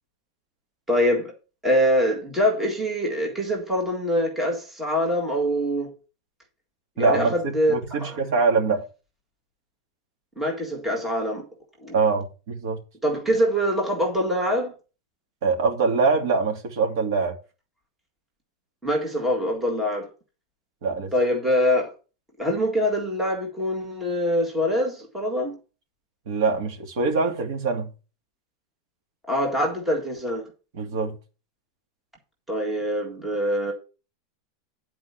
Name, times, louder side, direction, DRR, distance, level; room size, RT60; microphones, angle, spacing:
voice 1, 0.9-1.3 1.6-5.9 7.0-8.2 10.4-11.4 11.8-12.0 13.0-14.7 18.8-20.1 21.1-21.9 22.4-25.5 29.3-30.5 32.5-33.7, equal, 5° right, 1.8 m, -24 dB
voice 2, 7.0-8.8 11.9-12.8 15.4-17.4 20.8-21.1 26.3-27.9 30.7-31.2, right 4 dB, 60° right, 2.4 m, -23 dB
10.0 x 4.7 x 5.7 m
supercardioid pair, 175°, 2 cm